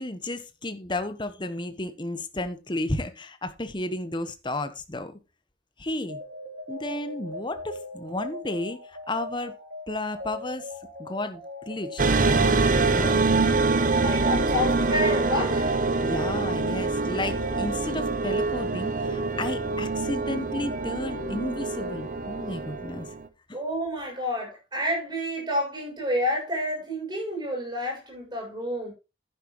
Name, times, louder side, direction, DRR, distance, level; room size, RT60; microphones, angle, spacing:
voice 1, 0.0-5.1 5.8-6.2 6.7-9.5 9.9-10.7 11.0-12.0 12.3-13.2 13.7-14.1 16.0-23.1, left 1 dB, 25° left, 1.2 m, -33 dB
sound 1, 6.1-22.7, left 1 dB, 75° right, 4.9 m, -40 dB
sound 2, 12.0-23.3, right 3 dB, 45° right, 1.0 m, -25 dB
voice 2, 13.7-15.9 23.5-28.9, left 1 dB, 25° right, 6.8 m, -29 dB
11.0 x 10.0 x 3.1 m
head